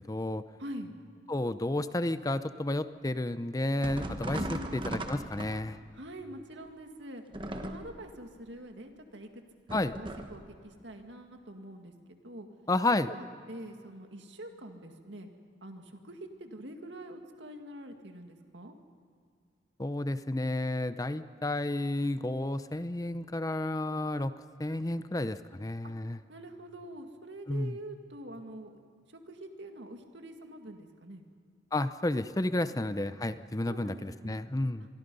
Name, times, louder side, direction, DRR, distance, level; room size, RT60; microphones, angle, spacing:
voice 1, 0.1-0.4 1.3-5.8 9.7-9.9 12.7-13.1 19.8-24.3 24.6-26.2 27.5-27.8 31.7-34.9, left 1 dB, 20° left, 12 dB, 0.6 m, -31 dB
voice 2, 0.6-0.9 4.3-5.0 5.9-7.2 7.5-9.4 9.7-11.9 12.2-12.5 13.1-15.3 15.6-18.7 25.8-25.9 26.3-28.8 29.1-31.2 33.7-34.4, right 1 dB, 70° right, 5 dB, 2.1 m, -45 dB
sound 1, 3.8-5.9 7.3-8.1 9.7-10.5, right 1 dB, 25° right, 1.2 m, -38 dB
26.5 x 22.5 x 5.5 m, 2.2 s
head